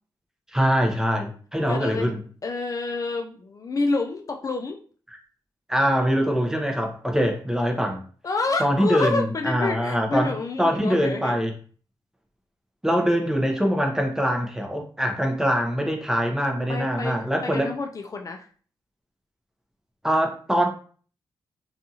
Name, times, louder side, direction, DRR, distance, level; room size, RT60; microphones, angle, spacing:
voice 1, 0.5-2.2 5.1-5.2 5.7-8.0 8.6-10.3 10.6-11.5 12.8-17.7 20.0-20.7, equal, 5° right, 3 dB, 0.7 m, -23 dB
voice 2, 1.7-2.1 2.4-4.8 8.2-11.4 16.7-17.2 17.4-18.5, left 3 dB, 40° left, 4 dB, 0.4 m, -28 dB
2.6 x 2.4 x 2.7 m, 0.42 s
cardioid pair, 65°, 9 cm